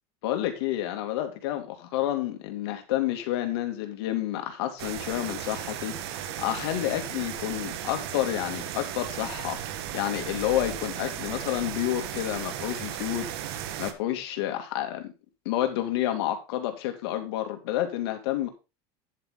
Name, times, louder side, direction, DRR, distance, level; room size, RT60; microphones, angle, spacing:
voice 1, 0.2-9.6 9.9-13.3 13.8-15.1 15.4-18.5, left 13 dB, 85° left, 2.7 m, -29 dB
sound 1, 4.8-13.9, right 11 dB, 85° right, 1.4 m, -35 dB
10.0 x 8.1 x 3.9 m
cardioid pair, 170°, 13 cm